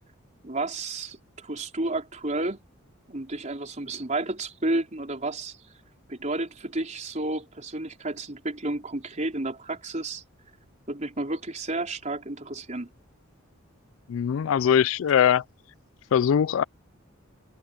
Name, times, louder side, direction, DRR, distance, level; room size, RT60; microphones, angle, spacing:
voice 1, 0.4-2.6 3.1-5.6 6.1-10.2 10.9-12.9, right 2 dB, 35° right, 4.3 m, -31 dB
voice 2, 14.1-15.4 16.1-16.6, left 8 dB, 75° left, 0.3 m, -21 dB
head